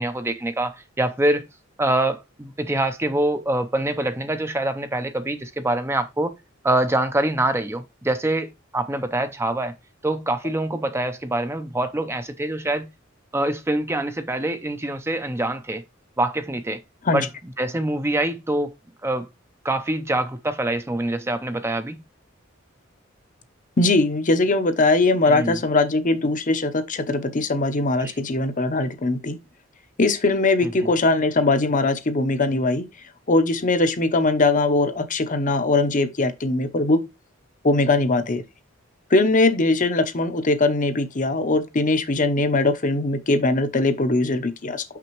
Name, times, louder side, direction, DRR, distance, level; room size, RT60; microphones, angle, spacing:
voice 1, 0.0-1.4 1.8-6.4 6.6-9.7 10.0-12.9 13.3-15.8 16.2-16.8 17.1-17.3 17.6-18.7 19.0-19.3 19.6-22.0 25.3-25.6 28.0-28.1 30.6-30.9, right 1 dB, 15° right, 0.5 m, -25 dB
voice 2, 23.8-29.4 30.0-32.8 33.3-37.0 37.6-38.4 39.1-44.8, left 2 dB, 40° left, 0.8 m, -21 dB
6.0 x 5.9 x 3.0 m
head